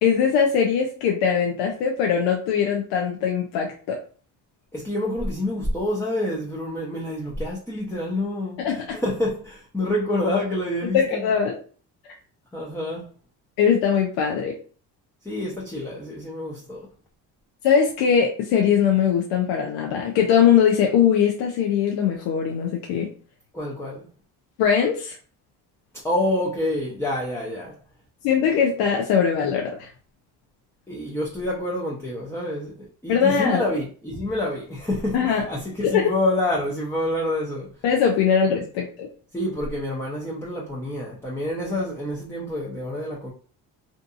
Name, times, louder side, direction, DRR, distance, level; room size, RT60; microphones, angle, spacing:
voice 1, 0.0-4.0 8.6-9.0 10.9-11.5 13.6-14.5 17.6-23.1 24.6-25.2 28.2-29.9 33.1-33.6 35.1-35.4 35.8-36.1 37.8-39.1, left 7 dB, 85° left, 0.6 m, -21 dB
voice 2, 4.7-11.2 12.5-13.1 15.2-16.9 23.5-24.0 26.0-27.8 30.9-37.7 39.3-43.3, left 1 dB, 5° left, 0.6 m, -27 dB
2.6 x 2.5 x 2.4 m
supercardioid pair, 85°, 42 cm